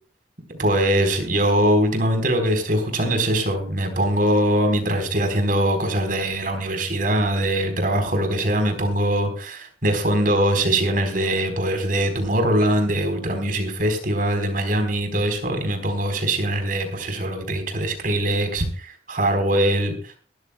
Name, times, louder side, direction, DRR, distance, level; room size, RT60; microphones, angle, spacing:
voice 1, 0.6-20.2, right 1 dB, 50° right, 5 dB, 4.2 m, -22 dB
22.5 x 13.5 x 2.3 m, 0.39 s
head